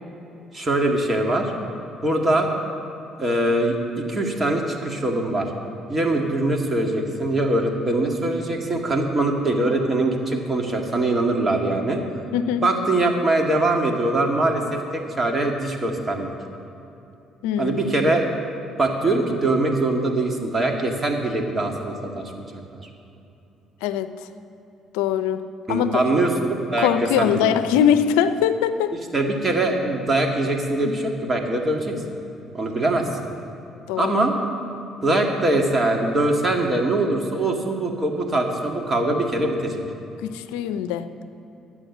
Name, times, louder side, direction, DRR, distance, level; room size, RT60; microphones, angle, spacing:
voice 1, 0.5-1.5 2.0-2.5 3.2-5.5 5.9-12.0 12.6-16.3 17.6-18.3 18.8-22.5 22.7-22.9 25.7-27.5 29.1-32.0 32.5-33.1 34.0-34.3 35.0-39.8, right 2 dB, 30° right, 2 dB, 2.1 m, -22 dB
voice 2, 17.4-17.9 23.8-24.1 24.9-25.4 25.7-26.0 26.8-28.9 30.8-30.9 33.9-34.1 40.2-41.1, left 9 dB, 85° left, 11 dB, 0.5 m, -22 dB
11.5 x 8.5 x 7.2 m, 2.8 s
supercardioid pair, 65°, 0 cm